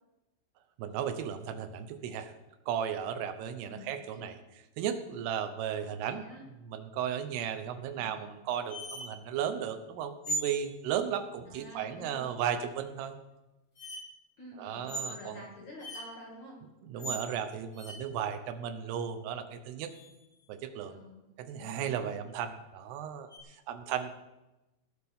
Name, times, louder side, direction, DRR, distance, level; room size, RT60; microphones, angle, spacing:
voice 1, 0.8-2.3 2.7-4.4 4.8-6.2 6.7-13.1 14.6-15.4 16.8-19.9 20.5-21.0 21.5-24.1, right 8 dB, 80° right, 8 dB, 2.4 m, -35 dB
voice 2, 3.6-3.9 5.8-6.5 7.9-8.4 11.5-12.4 14.4-16.6 16.9-17.2 20.9-21.3 21.6-22.2, equal, 45° left, -4 dB, 2.9 m, -49 dB
sound 1, 8.7-9.1 10.2-10.6 12.8-12.9 13.8-14.0 14.9-15.1 15.8-16.0 17.0-17.3 17.7-17.9 19.8-20.4 23.3-23.4, right 1 dB, 10° left, 2.1 m, -37 dB
19.0 x 12.0 x 3.7 m, 0.98 s
omnidirectional pair, 5.8 m